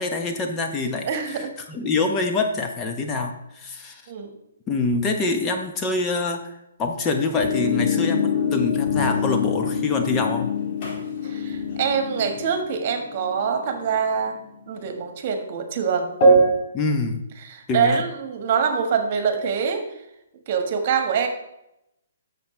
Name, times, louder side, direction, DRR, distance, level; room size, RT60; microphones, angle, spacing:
voice 1, 0.0-4.0 4.7-6.5 6.8-10.5 16.7-17.2 17.7-18.0, left 3 dB, 20° left, 4 dB, 1.0 m, -25 dB
voice 2, 1.1-1.5 4.1-4.3 11.2-14.4 14.7-16.2 17.4-20.0 20.5-21.3, right 6 dB, 45° right, 6 dB, 1.5 m, -25 dB
sound 1, 7.3-14.1 14.8-14.9 16.2-16.5, left 1 dB, 45° left, 2.2 m, -23 dB
10.0 x 7.0 x 3.3 m, 0.83 s
hypercardioid pair, 135°, 0 cm